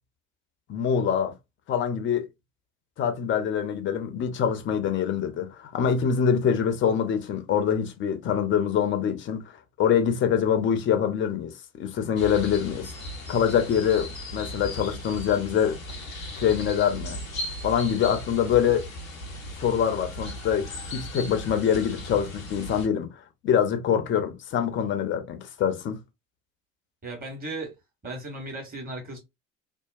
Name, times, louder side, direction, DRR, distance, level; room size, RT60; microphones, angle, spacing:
voice 1, 0.7-1.3 1.7-2.3 3.0-12.9 13.3-15.8 16.4-17.2 17.6-18.9 19.6-23.1 23.4-26.0, left 8 dB, 30° left, 0.6 m, -25 dB
sound 1, 12.2-22.9, left 1 dB, 90° left, 0.7 m, -37 dB
voice 2, 27.0-27.7 28.0-29.2, right 2 dB, 20° right, 1.5 m, -36 dB
2.8 x 2.2 x 2.4 m
figure-of-eight pair, 65°, 39 cm